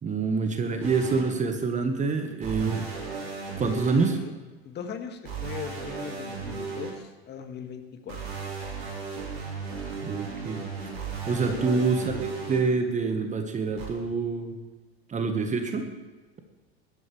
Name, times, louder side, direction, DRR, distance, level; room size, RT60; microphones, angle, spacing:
voice 1, 0.0-2.9 3.6-4.2 10.0-10.6 11.3-14.5 15.1-15.9, right 4 dB, 20° right, 6 dB, 1.5 m, -26 dB
sound 1, 0.8-1.2 2.4-4.1 5.2-6.9 8.1-12.6 13.8-13.9, right 5 dB, 65° right, 4.0 m, -35 dB
voice 2, 3.6-4.3 4.6-8.2 11.5-11.8, left 7 dB, 30° left, 5 dB, 1.9 m, -39 dB
20.0 x 12.5 x 3.4 m, 1.3 s
figure-of-eight pair, 80°, 32 cm